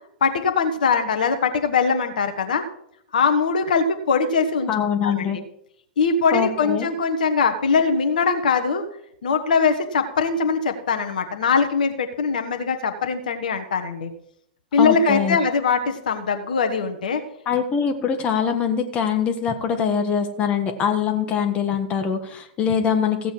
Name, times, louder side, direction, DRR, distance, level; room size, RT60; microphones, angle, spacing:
voice 1, 0.2-2.7 3.1-4.7 5.0-5.4 6.0-8.8 9.2-14.1 14.7-17.2, left 5 dB, 60° left, 6 dB, 1.2 m, -21 dB
voice 2, 4.7-5.4 6.3-6.9 14.8-15.4 17.5-23.3, left 7 dB, 25° left, 6 dB, 1.4 m, -23 dB
15.5 x 8.0 x 4.7 m, 0.72 s
figure-of-eight pair, 100°, 5 cm